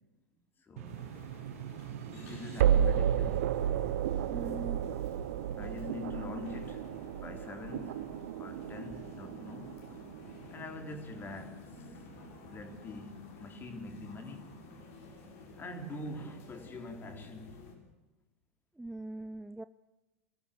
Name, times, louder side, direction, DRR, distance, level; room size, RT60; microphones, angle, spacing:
voice 1, 0.6-1.1 2.1-3.9 5.5-8.0 8.4-10.0 10.5-12.1 12.3-14.5 15.5-17.7, left 3 dB, 25° left, 4.0 m, -45 dB
sound 1, 0.8-17.7, left 2 dB, 65° left, 6.4 m, -52 dB
sound 2, 0.8-11.8, right 9 dB, 70° right, 0.9 m, -33 dB
voice 2, 4.3-4.8 18.8-19.6, right 2 dB, 5° right, 0.6 m, -41 dB
26.5 x 14.0 x 7.0 m
hypercardioid pair, 95°, 8 cm